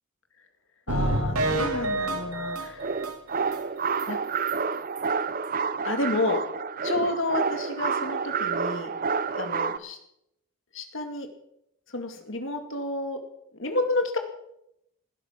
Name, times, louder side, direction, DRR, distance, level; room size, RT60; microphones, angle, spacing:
voice 1, 0.9-2.9 4.1-4.2 5.8-6.4 6.8-8.9 9.3-10.0 10.7-11.3 11.9-13.2 13.5-14.2, left 2 dB, 55° left, 6 dB, 2.4 m, -30 dB
sound 1, 0.9-3.6 4.0-4.1 4.5-4.6 5.0-5.1, right 1 dB, 85° right, 2.3 m, -28 dB
sound 2, 2.8-9.8, right 5 dB, 40° right, 0.7 m, -29 dB
20.0 x 12.0 x 5.9 m, 0.80 s
head